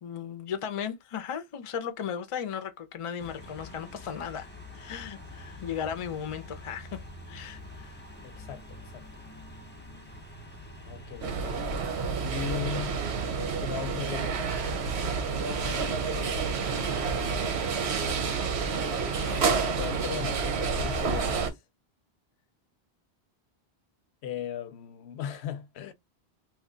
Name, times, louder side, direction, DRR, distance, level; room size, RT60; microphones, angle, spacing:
voice 1, 0.0-4.5 4.7-7.0 7.3-8.0, left 8 dB, 40° left, 0.5 m, -36 dB
sound 1, 3.2-12.2, left 1 dB, 10° left, 0.8 m, -46 dB
voice 2, 8.2-9.1 10.9-11.7 12.0-13.0 13.4-14.5 16.0-16.6 19.2-21.6 24.2-25.9, left 9 dB, 80° left, 0.8 m, -38 dB
sound 2, 11.2-21.5, right 5 dB, 90° right, 1.0 m, -29 dB
2.9 x 2.2 x 3.7 m
omnidirectional pair, 1.1 m